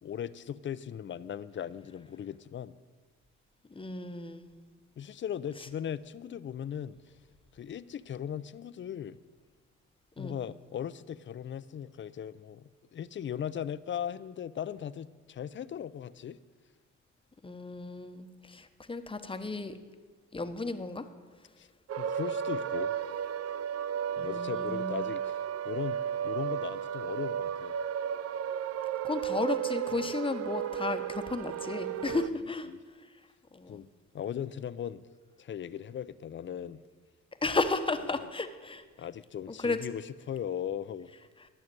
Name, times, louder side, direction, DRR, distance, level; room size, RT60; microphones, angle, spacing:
voice 1, 0.0-2.8 5.0-7.0 7.5-9.2 10.2-16.4 21.6-21.7 22.0-22.9 24.2-27.8 29.9-30.1 32.1-32.8 33.7-33.9 34.1-35.0 35.4-36.8 38.1-38.3 39.0-41.1, left 9 dB, 40° left, 16 dB, 0.5 m, -38 dB
voice 2, 3.7-4.5 10.2-10.3 17.4-19.7 20.3-21.0 24.2-25.0 29.0-32.7 33.5-33.9 37.4-38.8 39.6-39.8, left 3 dB, 15° left, 8 dB, 0.9 m, -33 dB
sound 1, 21.9-32.3, right 9 dB, 55° right, 0.5 m, -34 dB
12.5 x 6.4 x 9.0 m, 1.4 s
cardioid pair, 90°, 30 cm